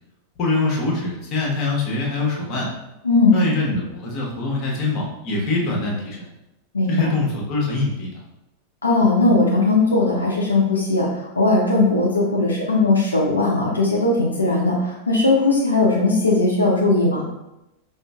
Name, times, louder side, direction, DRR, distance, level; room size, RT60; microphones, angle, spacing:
voice 1, 0.4-2.7 3.3-6.3 6.9-8.1, left 3 dB, 35° left, -2 dB, 1.0 m, -23 dB
voice 2, 3.0-3.4 6.7-7.1 8.8-17.3, left 3 dB, 75° left, -3 dB, 0.5 m, -18 dB
5.0 x 2.5 x 2.3 m, 0.93 s
figure-of-eight pair, 90°, 0 cm